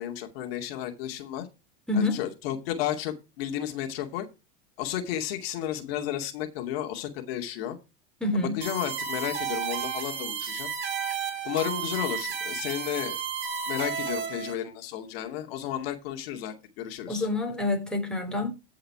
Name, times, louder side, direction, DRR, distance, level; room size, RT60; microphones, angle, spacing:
voice 1, 0.0-1.5 1.9-4.3 4.8-7.8 8.3-10.7 11.4-13.2 13.7-17.3, left 11 dB, 70° left, 2.6 m, -33 dB
voice 2, 1.9-2.2 8.2-8.6 17.1-18.5, left 2 dB, ahead, 3.4 m, -27 dB
sound 1, 8.6-14.5, right 7 dB, 40° right, 4.4 m, -32 dB
14.5 x 5.6 x 4.7 m
supercardioid pair, 120°, 31 cm